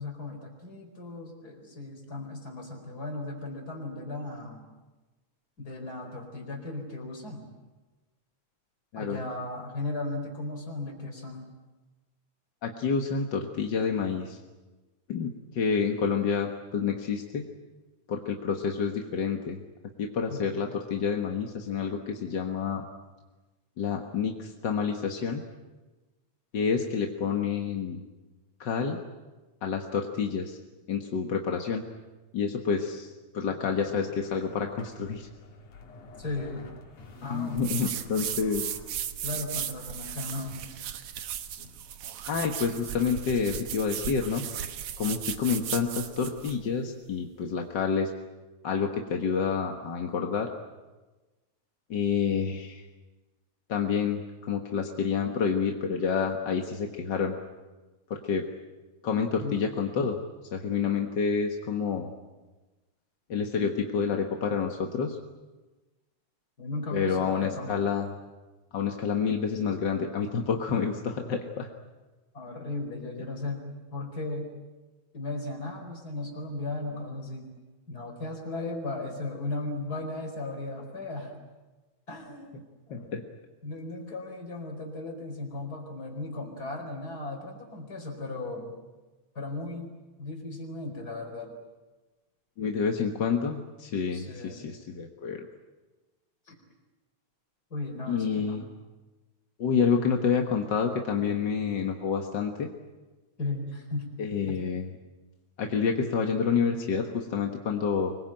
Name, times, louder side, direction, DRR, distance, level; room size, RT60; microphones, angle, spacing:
voice 1, 0.0-4.7 5.6-7.5 8.9-11.4 20.3-20.6 36.2-36.7 37.2-37.6 39.2-40.6 59.4-59.6 66.6-67.7 72.3-74.5 75.1-77.4 77.9-81.3 82.1-82.6 82.9-83.2 83.6-88.8 89.3-89.9 90.2-91.5 92.6-92.8 94.1-94.7 96.5-96.6 97.7-98.6 103.4-104.1 104.5-104.7, left 2 dB, 30° left, 3 dB, 4.9 m, -36 dB
voice 2, 12.6-14.4 15.1-17.4 18.1-19.6 20.0-22.9 23.8-25.4 26.5-28.0 28.6-29.0 29.6-30.6 30.9-31.8 32.3-35.3 37.2-38.7 42.3-44.4 45.0-48.1 48.6-50.5 51.9-52.8 53.7-57.4 58.1-58.4 59.0-60.2 60.5-62.1 63.3-65.2 66.9-68.1 68.7-71.7 82.9-83.2 92.6-95.5 98.1-98.6 99.6-102.7 104.2-104.9 105.6-108.2, left 6 dB, 45° left, 3 dB, 1.6 m, -28 dB
sound 1, 33.6-42.1, left 3 dB, 80° left, 4.2 m, -51 dB
sound 2, 37.6-46.6, right 10 dB, 70° right, 2.4 m, -36 dB
25.0 x 22.0 x 9.0 m, 1.2 s
omnidirectional pair, 3.5 m